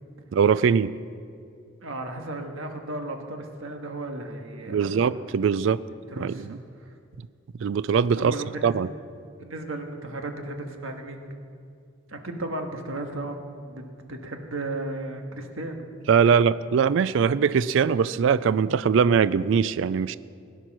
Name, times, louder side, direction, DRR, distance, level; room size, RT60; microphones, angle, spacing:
voice 1, 0.3-0.9 4.7-5.8 6.2-6.5 7.6-8.3 8.6-8.9 16.1-20.2, right 6 dB, 65° right, 17 dB, 0.3 m, -21 dB
voice 2, 1.8-5.1 6.1-6.9 8.1-8.8 9.4-11.3 12.1-15.9, right 2 dB, 80° right, 4 dB, 1.6 m, -35 dB
17.5 x 10.0 x 6.1 m, 2.3 s
head